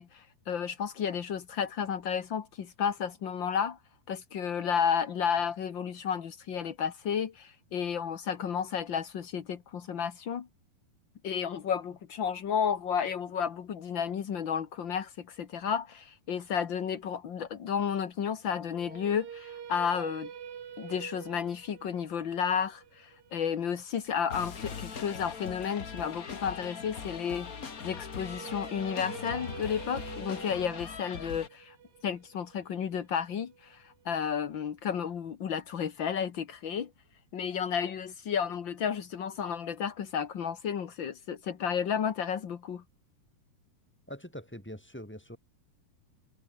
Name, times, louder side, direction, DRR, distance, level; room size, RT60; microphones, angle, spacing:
voice 1, 0.0-3.8 4.1-10.5 11.2-20.3 20.8-31.7 32.0-36.9 37.3-42.8, left 7 dB, 80° left, 1.0 m, -32 dB
sound 1, 18.7-24.8 28.0-34.1, right 8 dB, 85° right, 5.2 m, -47 dB
sound 2, 24.3-31.5, left 5 dB, 50° left, 1.0 m, -41 dB
voice 2, 44.1-45.4, equal, ahead, 7.7 m, -43 dB
omnidirectional pair, 4.6 m